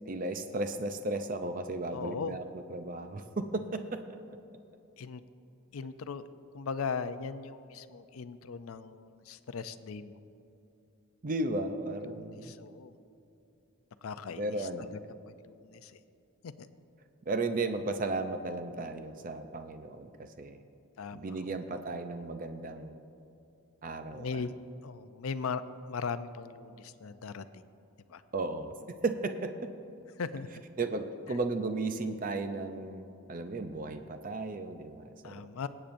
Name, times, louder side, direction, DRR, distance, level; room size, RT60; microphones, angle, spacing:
voice 1, 0.1-2.4 2.7-4.0 11.2-12.5 14.4-14.9 17.3-20.6 21.1-23.0 23.8-24.5 28.3-29.7 30.8-35.4, right 2 dB, 40° right, 8 dB, 0.5 m, -35 dB
voice 2, 1.9-2.4 5.0-5.2 5.7-6.3 6.5-10.2 12.0-12.9 14.0-16.0 16.4-16.7 21.0-21.6 24.1-24.6 24.8-27.6 28.1-28.2 30.2-30.5 31.3-31.4 35.2-35.7, left 5 dB, 75° left, 12 dB, 0.5 m, -39 dB
21.0 x 8.8 x 2.6 m, 2.8 s
head